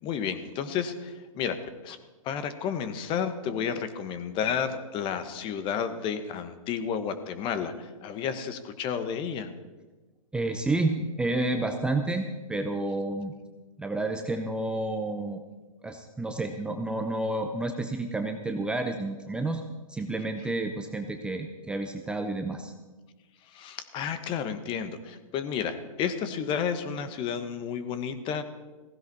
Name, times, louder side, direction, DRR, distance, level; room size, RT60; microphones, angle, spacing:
voice 1, 0.0-2.0 2.2-9.5 23.5-28.4, left 7 dB, 30° left, 11 dB, 1.2 m, -31 dB
voice 2, 10.3-13.3 13.8-15.4 15.8-19.6 19.9-22.7, right 2 dB, 5° right, 5 dB, 0.7 m, -30 dB
16.0 x 15.5 x 4.2 m, 1.2 s
hypercardioid pair, 130°, 18 cm